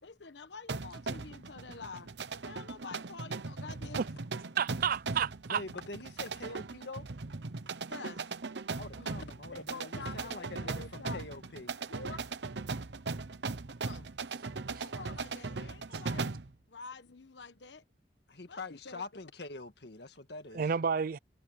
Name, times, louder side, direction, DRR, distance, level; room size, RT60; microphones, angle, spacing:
voice 1, 0.0-2.1 2.4-4.0 7.9-8.2 9.0-9.2 9.5-11.2 11.9-12.2 13.8-14.1 14.6-17.8 18.5-19.0, left 4 dB, 85° left, 1.2 m, -47 dB
sound 1, 0.7-16.5, right 4 dB, 75° right, 0.9 m, -39 dB
voice 2, 4.6-5.6 14.8-14.9 20.5-21.2, right 6 dB, 55° right, 0.4 m, -30 dB
voice 3, 5.5-7.1 8.7-11.7 18.3-20.6, left 2 dB, 65° left, 1.9 m, -45 dB
head